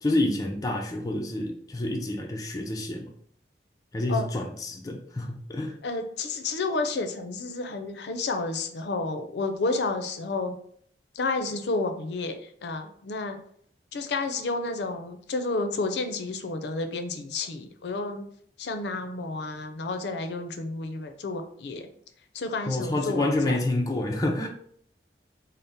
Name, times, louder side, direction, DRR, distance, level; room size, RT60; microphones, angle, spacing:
voice 1, 0.0-3.1 3.9-5.7 22.7-24.5, left 1 dB, 20° left, 1 dB, 0.3 m, -28 dB
voice 2, 5.8-10.6 11.1-13.4 13.9-18.2 18.6-21.9 22.3-23.6, left 3 dB, 80° left, 7 dB, 0.5 m, -31 dB
4.0 x 2.0 x 3.5 m, 0.63 s
head